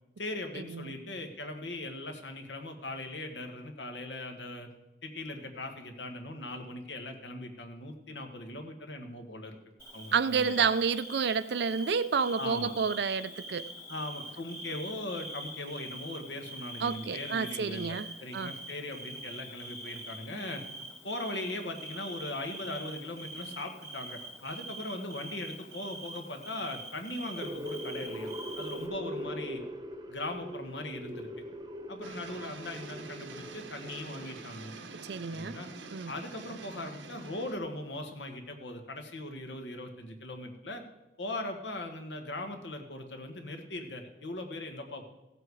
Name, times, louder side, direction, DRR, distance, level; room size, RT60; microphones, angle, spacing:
voice 1, 0.2-4.7 5.0-9.6 9.9-10.6 12.4-12.7 13.9-20.6 21.0-28.3 28.6-29.6 30.1-31.4 31.9-34.7 35.3-35.7 36.1-40.8 41.2-45.1, left 1 dB, 75° left, 1.6 m, -39 dB
Bird / Cricket, 9.8-28.9, right 1 dB, 15° left, 1.6 m, -44 dB
voice 2, 10.1-13.7 16.8-18.1 18.3-18.5 35.1-35.6 35.9-36.1, right 6 dB, 65° right, 0.5 m, -29 dB
sound 1, 27.2-34.4, equal, 20° right, 1.0 m, -41 dB
sound 2, 32.0-37.6, right 3 dB, 90° right, 1.1 m, -46 dB
16.0 x 7.7 x 4.8 m
head